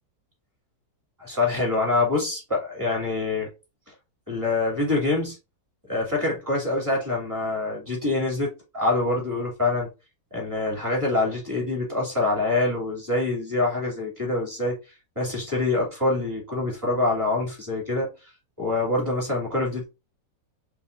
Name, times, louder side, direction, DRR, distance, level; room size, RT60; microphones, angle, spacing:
voice 1, 1.2-3.5 4.3-5.4 5.8-9.9 10.3-14.8 15.2-18.1 18.6-19.8, left 2 dB, 10° right, 2.5 m, -25 dB
6.0 x 3.1 x 2.5 m
omnidirectional pair, 1.9 m